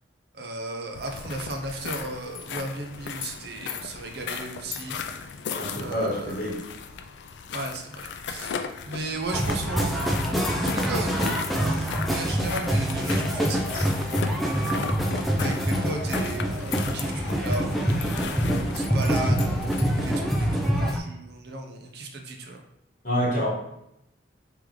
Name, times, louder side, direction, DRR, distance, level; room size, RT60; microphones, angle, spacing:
voice 1, 0.3-5.0 5.8-6.4 7.5-8.5 8.8-9.9 10.5-11.1 11.5-14.4 15.4-18.1 18.7-22.6, right 2 dB, 60° right, 3 dB, 0.6 m, -35 dB
sound 1, 0.9-20.2, left 6 dB, 70° left, 0.3 m, -36 dB
voice 2, 5.6-6.6 23.0-23.5, equal, 45° left, -6 dB, 1.5 m, -27 dB
sound 2, 9.3-21.0, equal, ahead, 0.4 m, -25 dB
3.7 x 3.4 x 3.1 m, 0.83 s
head